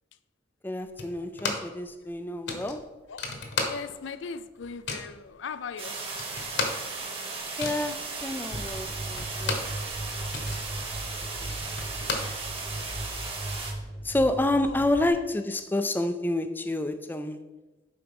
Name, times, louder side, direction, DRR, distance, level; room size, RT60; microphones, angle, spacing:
voice 1, 0.6-2.9 7.6-10.0 10.3-10.4 11.4-11.6 11.9-12.1 14.0-17.5, left 1 dB, 10° left, 0.4 m, -29 dB
sound 1, 1.0-1.8 2.1-2.2 2.5-4.2 4.4-5.2 5.7-5.8 6.0-9.8 10.1-12.9, left 3 dB, 60° left, 1.2 m, -34 dB
voice 2, 3.7-6.0 8.1-8.3 11.3-11.5 14.7-14.8, left 5 dB, 75° left, 0.4 m, -39 dB
sound 2, 5.8-13.7, right 4 dB, 30° right, 1.3 m, -36 dB
sound 3, 8.5-15.1, right 1 dB, 55° right, 1.9 m, -38 dB
7.7 x 5.0 x 5.2 m
head